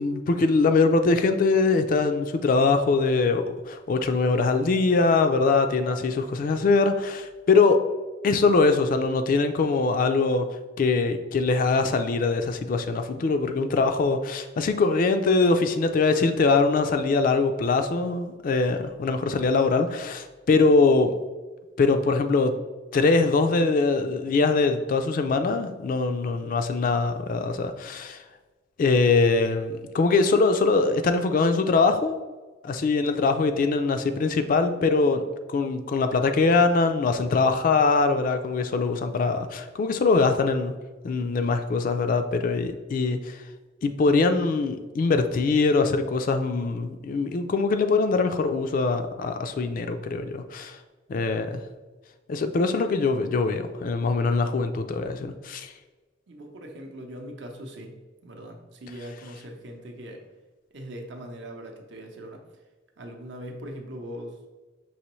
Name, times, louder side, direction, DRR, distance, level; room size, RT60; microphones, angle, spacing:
voice 1, 0.0-7.8 8.2-10.5 10.8-21.1 21.8-22.5 22.9-28.2 28.8-32.2 32.6-35.2 35.5-40.7 41.0-43.4 43.8-50.8 51.1-51.6 52.3-55.7, left 3 dB, 45° left, 8 dB, 0.3 m, -22 dB
voice 2, 56.3-60.2 60.7-62.4 63.0-64.4, equal, 65° right, 3 dB, 0.7 m, -40 dB
5.5 x 2.9 x 3.0 m, 1.3 s
head